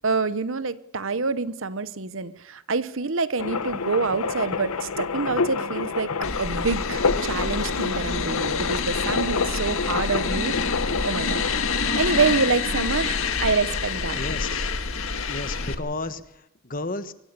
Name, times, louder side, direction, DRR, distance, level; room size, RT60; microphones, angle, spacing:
voice 1, 0.0-6.1 6.4-10.6 11.0-11.4 12.0-14.2, right 4 dB, 60° right, 15 dB, 0.9 m, -26 dB
sound 1, 3.4-14.3 14.6-14.7 14.9-16.1, left 4 dB, 85° left, 1.0 m, -29 dB
sound 2, 6.2-15.7, left 4 dB, 65° left, 1.9 m, -27 dB
voice 2, 14.2-14.7 15.3-17.1, left 2 dB, 40° left, 11 dB, 1.3 m, -33 dB
24.0 x 16.0 x 6.8 m, 0.84 s
head